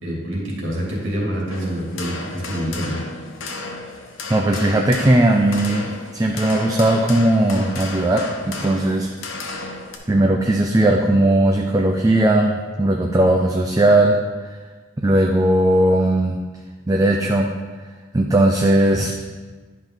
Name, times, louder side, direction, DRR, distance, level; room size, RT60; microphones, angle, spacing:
voice 1, 0.0-3.0 18.9-19.0, equal, 85° right, -4 dB, 2.5 m, -26 dB
sound 1, 1.5-10.0, left 3 dB, 85° left, 1.1 m, -33 dB
voice 2, 4.3-9.1 10.1-14.2 15.0-16.4 16.9-17.5 18.1-19.1, right 1 dB, 20° right, 1 dB, 0.5 m, -17 dB
10.5 x 5.3 x 3.9 m, 1.4 s
head